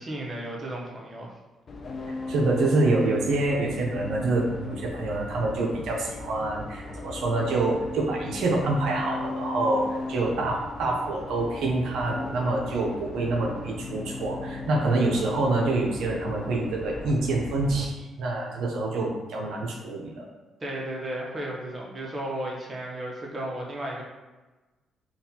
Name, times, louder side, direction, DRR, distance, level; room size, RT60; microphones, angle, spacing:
voice 1, 0.0-1.4 20.6-24.0, right 1 dB, 30° right, -2 dB, 0.8 m, -34 dB
sound 1, 1.7-17.8, left 2 dB, 45° left, 0.4 m, -37 dB
voice 2, 2.1-20.3, right 2 dB, 80° right, -2 dB, 0.5 m, -26 dB
4.0 x 2.3 x 2.7 m, 1.2 s
cardioid pair, 90°, 0 cm